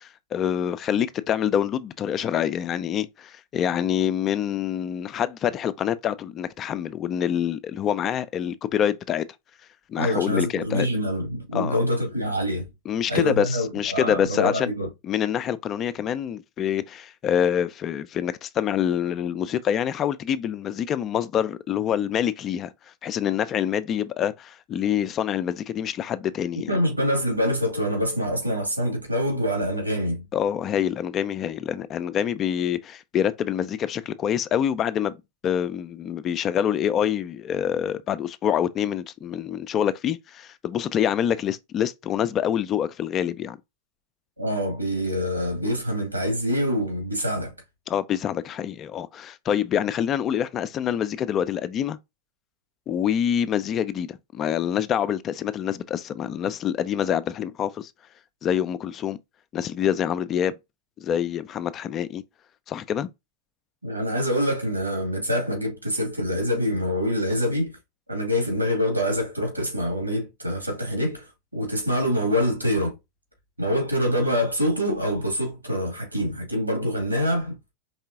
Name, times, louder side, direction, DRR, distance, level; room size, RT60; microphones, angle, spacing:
voice 1, 0.0-9.3 9.9-10.9 11.5-11.8 12.9-14.7 15.0-22.7 23.0-26.8 30.3-35.1 35.4-43.6 47.9-52.0 52.9-57.9 58.4-59.2 59.5-60.6 61.0-62.2 62.7-63.1, left 9 dB, 30° left, 0.4 m, -26 dB
voice 2, 10.0-12.7 13.1-14.9 26.7-30.2 44.4-47.5 63.8-67.7 68.1-73.0 73.6-77.6, equal, 85° right, 2.4 m, -25 dB
4.7 x 3.6 x 2.8 m
figure-of-eight pair, 90°, 0 cm